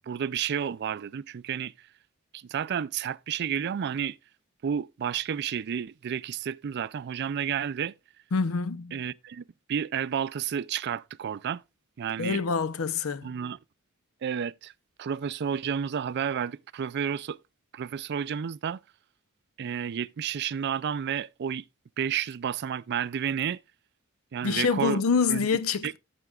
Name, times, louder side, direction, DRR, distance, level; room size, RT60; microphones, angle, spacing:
voice 1, 0.0-1.7 2.3-4.2 4.6-7.9 8.9-11.6 12.0-12.4 13.2-13.6 14.2-14.7 15.0-17.4 17.7-18.8 19.6-21.7 22.0-23.6 24.3-25.0 25.3-25.5 25.8-25.9, right 8 dB, 55° right, 0.4 m, -31 dB
voice 2, 8.3-9.0 12.2-13.3 24.4-26.0, left 5 dB, 85° left, 0.6 m, -26 dB
14.0 x 6.8 x 2.3 m
head